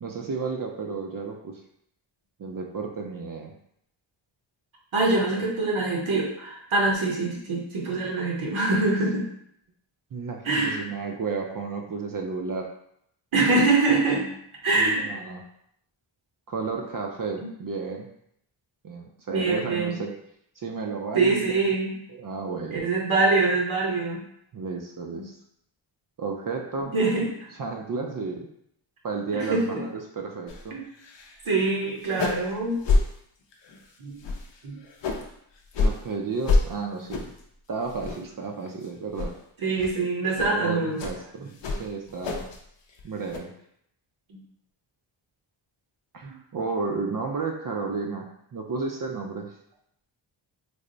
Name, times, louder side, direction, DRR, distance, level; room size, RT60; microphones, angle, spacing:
voice 1, 0.0-1.6 2.4-3.5 5.3-5.5 8.7-8.8 10.1-12.7 14.7-15.4 16.5-18.1 18.8-20.1 20.6-21.6 22.1-22.8 24.5-25.3 26.2-26.9 27.6-28.5 29.0-30.8 35.8-37.3 37.7-39.3 40.4-42.5 43.0-43.5 46.1-49.5, right 4 dB, 45° right, 2 dB, 0.4 m, -32 dB
voice 2, 4.9-9.2 10.4-10.8 13.3-14.3 14.6-15.0 19.3-20.0 21.1-22.0 22.7-24.2 25.1-25.3 26.9-27.5 29.3-29.8 30.7-30.8 31.5-32.8 34.0-34.1 34.6-34.8 39.6-41.0 44.3-44.4 46.2-46.3, right 3 dB, 75° right, -3 dB, 0.9 m, -24 dB
sound 1, 30.5-30.6 30.9-31.4 31.7-31.8 32.0-32.5 32.8-33.0 33.5-33.8 34.2-35.3 35.7-36.0 36.4-36.6 37.1-37.4 37.8-38.4 38.7-38.8 39.1-39.3 39.8-39.9 40.3-40.5 41.0-41.2 41.6-42.6 42.9-43.4, left 3 dB, 60° left, 0.6 m, -26 dB
3.3 x 2.0 x 3.8 m, 0.73 s
wide cardioid pair, 105°, 49 cm